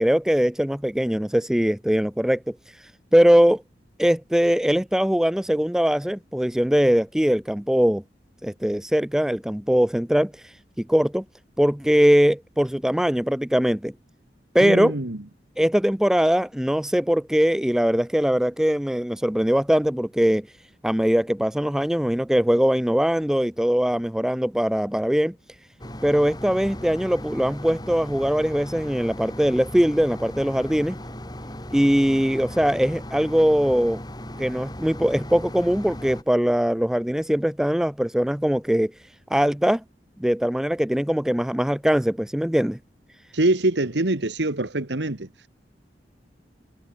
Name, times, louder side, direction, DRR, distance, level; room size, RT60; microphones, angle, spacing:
voice 1, 0.0-2.5 3.1-3.6 4.0-8.0 8.4-10.3 10.8-11.2 11.6-13.9 14.5-14.9 15.6-20.5 20.8-25.3 26.0-31.0 31.7-34.0 34.4-38.9 39.3-39.8 40.2-42.8, equal, 5° right, 0.4 m, -21 dB
voice 2, 14.6-15.2 43.3-45.5, right 2 dB, 90° right, 1.8 m, -24 dB
sound 1, 25.8-36.2, left 1 dB, 25° left, 6.3 m, -37 dB
head